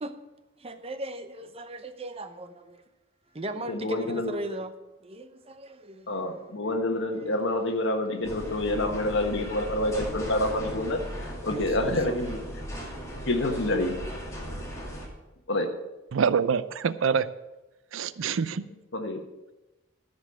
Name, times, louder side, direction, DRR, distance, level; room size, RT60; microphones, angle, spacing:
voice 1, 0.6-2.8 3.3-4.7 5.0-6.5 7.2-7.3 11.5-12.2, right 1 dB, 30° right, 9 dB, 0.7 m, -38 dB
voice 2, 3.7-4.3 6.1-12.4 13.3-14.0 15.5-15.7 18.9-19.2, left 1 dB, 65° left, 5 dB, 1.4 m, -28 dB
sound 1, 8.2-15.1, equal, 15° left, 2.4 m, -37 dB
voice 3, 16.1-17.3 17.9-18.6, right 6 dB, 75° right, 16 dB, 0.5 m, -25 dB
13.5 x 5.3 x 7.6 m, 1.0 s
head